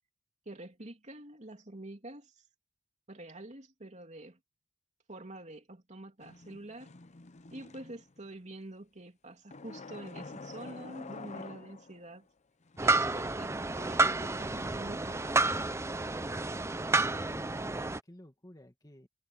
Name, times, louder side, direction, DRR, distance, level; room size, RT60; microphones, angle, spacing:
voice 1, 0.4-2.3 3.1-4.4 5.1-6.9 7.5-12.3 12.8-15.8, right 1 dB, 35° right, 3.0 m, -47 dB
sound 1, 6.2-8.3 9.5-12.1 12.7-13.8, left 3 dB, 35° left, 0.7 m, -48 dB
sound 2, 12.8-18.0, right 2 dB, 15° right, 0.6 m, -30 dB
voice 2, 17.1-19.1, equal, 20° left, 2.2 m, -53 dB
head